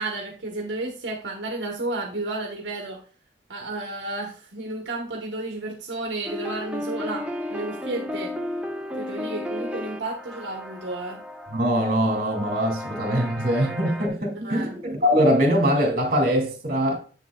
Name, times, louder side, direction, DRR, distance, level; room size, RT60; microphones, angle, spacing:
voice 1, 0.0-3.0 3.5-8.3 9.0-11.2 14.4-14.8, right 2 dB, 70° right, 1.1 m, -32 dB
sound 1, 6.2-14.1, left 1 dB, 5° right, 0.8 m, -34 dB
voice 2, 11.5-17.0, equal, 50° right, 2.3 m, -22 dB
7.6 x 7.3 x 2.3 m
head